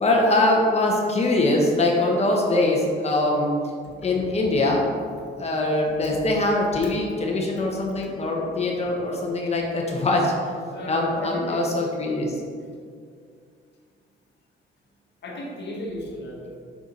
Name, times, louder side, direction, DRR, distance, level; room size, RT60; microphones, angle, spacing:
voice 1, 0.0-3.6 4.0-4.9 5.4-10.5 10.9-12.4, left 2 dB, 30° left, -1 dB, 1.3 m, -22 dB
voice 2, 10.7-11.7 15.2-16.6, left 1 dB, 60° left, -2 dB, 1.6 m, -34 dB
6.2 x 4.6 x 4.0 m, 2.2 s
cardioid pair, 90°, 20 cm